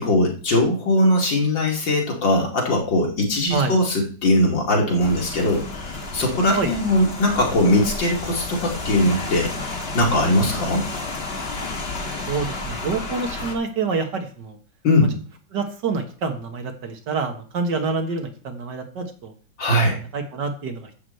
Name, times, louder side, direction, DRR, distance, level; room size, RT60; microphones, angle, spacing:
voice 1, 0.0-9.5 9.9-10.8 14.8-15.1 19.6-20.0, left 1 dB, 75° left, 0 dB, 3.3 m, -20 dB
Rain, 5.0-13.5, left 3 dB, 30° left, 1.9 m, -31 dB
voice 2, 12.3-14.6 15.5-19.3 19.7-20.9, right 4 dB, 65° right, 5 dB, 2.1 m, -27 dB
11.0 x 5.0 x 7.8 m, 0.41 s
omnidirectional pair, 2.0 m